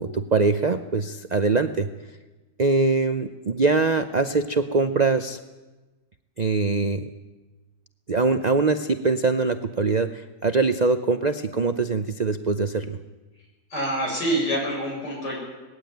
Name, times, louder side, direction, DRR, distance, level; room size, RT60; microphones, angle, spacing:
voice 1, 0.0-1.9 2.6-5.4 6.4-7.1 8.1-13.0, right 3 dB, 85° right, 9 dB, 0.3 m, -23 dB
voice 2, 13.7-15.4, right 1 dB, 75° left, -2 dB, 7.7 m, -26 dB
19.5 x 15.5 x 9.2 m, 1.2 s
omnidirectional pair, 1.8 m